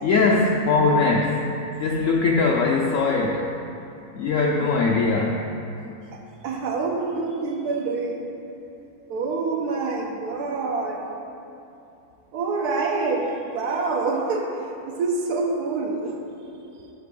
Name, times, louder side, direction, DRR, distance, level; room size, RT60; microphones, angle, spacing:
voice 1, 0.0-1.4 1.8-3.5 4.2-5.4, left 3 dB, 65° left, 0 dB, 0.8 m, -21 dB
voice 2, 6.1-8.2 9.1-11.0 12.3-16.1 16.7-16.8, right 3 dB, 85° right, 0 dB, 1.3 m, -26 dB
7.5 x 6.7 x 3.7 m, 2.8 s
omnidirectional pair, 1.6 m